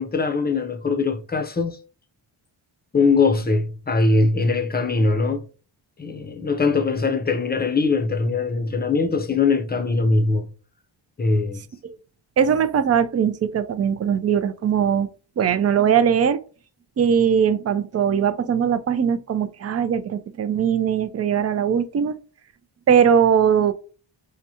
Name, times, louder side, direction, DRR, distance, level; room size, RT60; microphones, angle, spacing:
voice 1, 0.0-1.8 2.9-5.5 6.0-10.5 11.2-11.6, left 3 dB, 20° left, 0.6 m, -21 dB
voice 2, 12.4-15.1 15.4-16.4 17.0-22.2 22.9-23.7, right 7 dB, 35° right, 0.4 m, -20 dB
4.8 x 2.2 x 2.8 m
cardioid pair, 80°, 48 cm